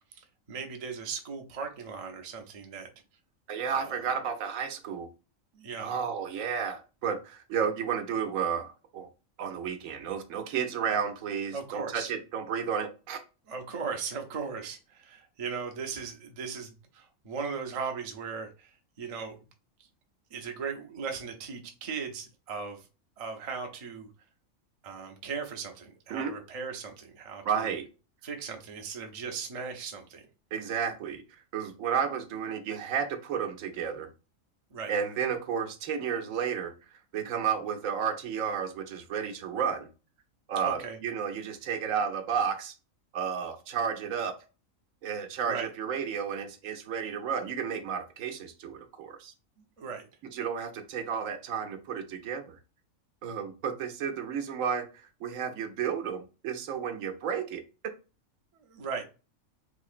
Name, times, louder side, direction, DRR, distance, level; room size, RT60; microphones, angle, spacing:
voice 1, 0.1-2.9 3.8-4.0 5.5-5.9 11.5-12.1 13.5-19.4 20.3-22.8 23.2-24.1 24.8-27.7 28.2-30.3 34.7-34.9 40.6-41.0 45.4-45.7 49.8-50.0 58.6-59.0, right 5 dB, 40° right, 3 dB, 0.5 m, -38 dB
voice 2, 3.5-5.1 5.8-9.1 9.4-13.2 26.1-26.3 27.4-27.9 30.5-31.2 31.5-34.1 34.9-36.7 37.1-39.9 40.5-42.7 43.1-44.4 45.0-49.3 50.2-52.6 53.2-57.6, right 7 dB, 75° right, 7 dB, 1.0 m, -32 dB
4.0 x 2.8 x 2.5 m, 0.32 s
omnidirectional pair, 1.4 m